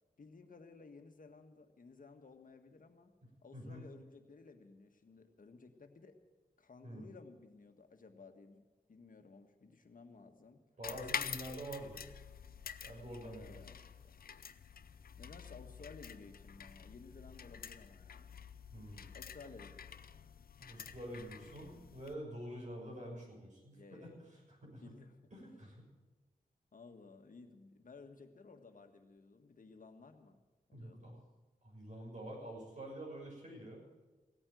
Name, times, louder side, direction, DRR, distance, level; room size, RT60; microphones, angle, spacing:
voice 1, 0.2-3.1 3.4-6.2 6.6-8.6 8.9-10.6 13.2-14.3 15.2-18.3 19.1-19.9 23.7-24.3 24.8-25.2 26.7-30.4 30.7-31.2, left 4 dB, 65° left, 6 dB, 1.6 m, -56 dB
voice 2, 3.5-3.8 6.8-7.0 10.8-12.0 12.8-13.6 18.7-19.1 20.6-24.1 24.5-24.9 25.3-25.9 30.7-31.2 31.6-33.8, right 1 dB, 55° right, -2 dB, 6.6 m, -47 dB
sound 1, 10.8-22.2, left 7 dB, 80° left, 0.6 m, -47 dB
16.5 x 8.9 x 9.2 m, 1.2 s
wide cardioid pair, 70°, 15 cm